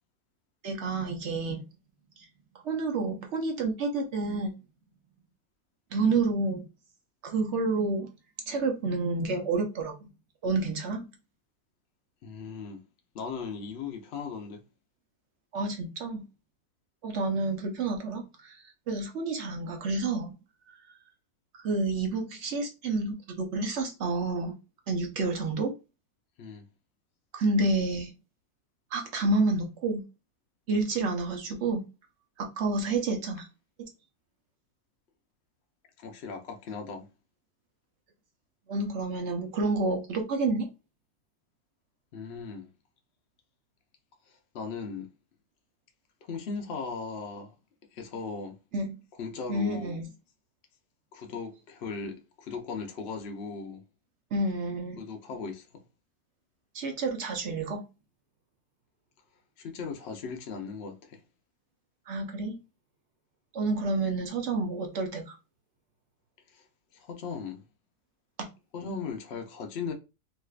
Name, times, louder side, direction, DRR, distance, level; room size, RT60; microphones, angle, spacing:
voice 1, 0.6-1.6 2.6-4.5 5.9-6.6 7.2-8.1 8.5-10.1 10.4-11.1 15.5-16.2 17.0-18.6 18.9-20.3 20.7-20.8 21.6-24.5 24.9-25.7 27.3-28.1 28.9-30.0 30.7-31.8 32.4-33.5 38.7-40.7 48.7-49.0 49.5-50.1 54.3-55.0 56.7-57.8 62.1-62.6 63.5-65.4, right 3 dB, 55° right, 0.8 m, -29 dB
voice 2, 12.2-12.8 13.1-14.6 26.4-26.7 36.0-37.1 42.1-42.7 44.3-45.1 46.3-47.5 47.9-48.5 49.2-50.0 51.1-53.8 55.0-55.7 59.6-61.2 66.5-66.6 66.9-67.6 68.7-69.9, left 5 dB, 75° left, 0.5 m, -38 dB
3.2 x 3.1 x 2.4 m
omnidirectional pair, 1.8 m